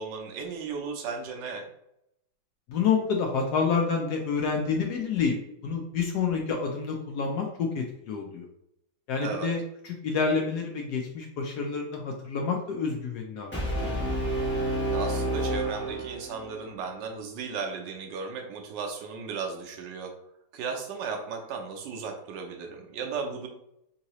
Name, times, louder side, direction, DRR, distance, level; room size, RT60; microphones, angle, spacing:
voice 1, 0.0-1.7 9.2-9.5 14.9-20.1 20.5-23.5, right 5 dB, 70° right, 2 dB, 1.2 m, -35 dB
voice 2, 2.7-5.3 5.6-8.5 9.1-9.6 10.0-13.5 13.8-14.0, left 5 dB, 80° left, 1 dB, 0.9 m, -28 dB
Brass instrument, 13.5-16.6, right 1 dB, 15° left, 0.4 m, -29 dB
3.7 x 2.8 x 3.0 m, 0.78 s
omnidirectional pair, 2.3 m